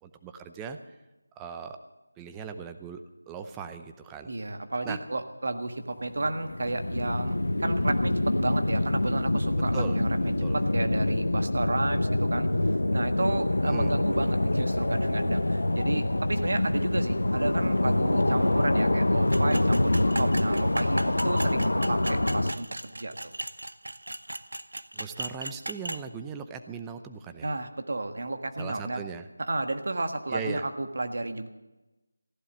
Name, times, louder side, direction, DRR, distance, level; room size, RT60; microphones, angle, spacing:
voice 1, 0.0-0.8 1.4-1.8 2.2-3.0 3.3-4.3 4.8-5.0 9.7-10.0 10.4-10.6 13.6-13.9 24.9-27.5 28.6-29.3 30.3-30.6, right 6 dB, 10° right, 8 dB, 0.7 m, -38 dB
voice 2, 4.3-23.3 27.4-29.0 29.4-31.5, right 2 dB, 60° right, 7 dB, 1.6 m, -32 dB
sound 1, 6.0-22.5, left 1 dB, 85° left, 0.9 m, -26 dB
sound 2, 19.3-26.0, right 1 dB, 85° right, 0.8 m, -36 dB
15.5 x 11.0 x 7.3 m, 1.1 s
figure-of-eight pair, 170°, 0 cm